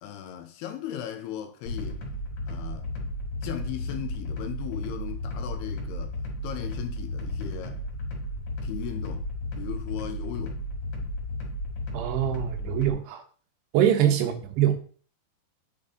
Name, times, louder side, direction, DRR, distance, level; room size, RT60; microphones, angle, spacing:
voice 1, 0.0-2.0 2.5-2.9 3.4-6.2 6.4-7.8 8.6-9.3 9.6-10.6 14.1-14.4, left 11 dB, 85° left, 2.7 m, -37 dB
sound 1, 1.7-12.9, left 1 dB, 50° left, 2.6 m, -34 dB
voice 2, 11.9-13.2 13.7-14.7, right 10 dB, 90° right, 3.1 m, -24 dB
9.4 x 4.2 x 3.7 m
omnidirectional pair, 4.7 m